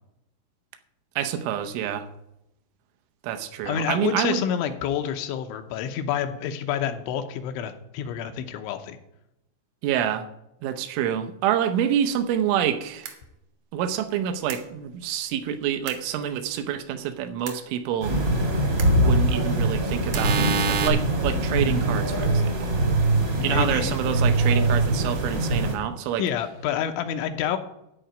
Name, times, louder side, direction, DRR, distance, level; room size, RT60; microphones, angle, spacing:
voice 1, 1.2-2.1 3.2-4.4 9.8-10.3 10.6-13.1 13.7-18.2 18.9-22.8 23.4-26.2, right 9 dB, 80° right, 8 dB, 3.3 m, -27 dB
voice 2, 3.7-9.0 23.4-23.9 26.2-27.6, left 9 dB, 80° left, 7 dB, 3.1 m, -28 dB
sound 1, 13.0-13.1 14.5-14.6 15.9-16.0 17.5-17.6 18.8-18.9 20.1-20.9, right 6 dB, 65° right, 2.0 m, -26 dB
sound 2, 18.0-25.8, right 2 dB, 45° right, 1.4 m, -23 dB
13.0 x 5.0 x 9.1 m, 0.83 s
omnidirectional pair, 5.6 m